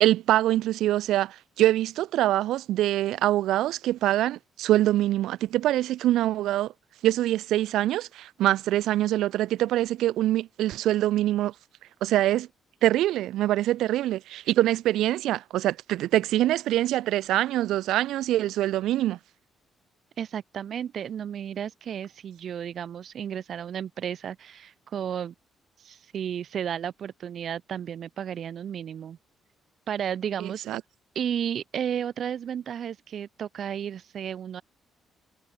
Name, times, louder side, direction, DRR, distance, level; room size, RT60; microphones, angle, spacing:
voice 1, 0.0-6.7 7.0-11.5 12.0-12.5 12.8-19.2 30.4-30.8, right 14 dB, 85° right, 0.4 m, -24 dB
voice 2, 20.2-25.3 25.8-29.2 29.9-30.7 31.1-34.6, right 9 dB, 60° right, 2.6 m, -33 dB
cardioid pair, 90°, 0 cm